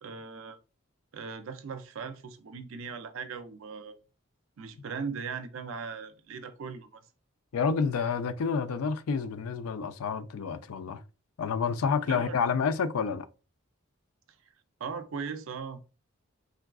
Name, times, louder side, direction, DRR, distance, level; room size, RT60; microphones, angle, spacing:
voice 1, 0.0-0.6 1.1-4.0 4.6-7.0 12.1-12.4 14.8-15.8, right 5 dB, 70° right, 0.4 m, -39 dB
voice 2, 7.5-11.0 11.4-13.3, left 5 dB, 90° left, 0.4 m, -29 dB
3.6 x 2.4 x 2.3 m
head